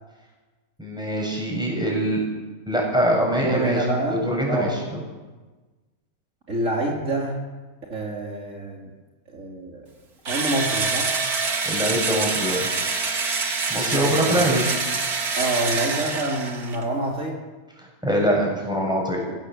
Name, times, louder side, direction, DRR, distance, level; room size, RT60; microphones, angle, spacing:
voice 1, 0.8-2.2 2.7-5.0 11.6-12.7 13.7-14.7 17.8-19.2, equal, 5° right, -2 dB, 7.8 m, -23 dB
voice 2, 3.3-4.8 6.5-7.4 7.9-8.9 9.3-9.9 10.3-11.1 13.8-14.6 15.4-17.4, right 1 dB, 55° right, -1 dB, 3.5 m, -27 dB
Engine / Drill, 10.3-16.8, right 4 dB, 90° right, 2.6 m, -26 dB
24.5 x 17.0 x 8.1 m, 1.3 s
omnidirectional pair, 1.5 m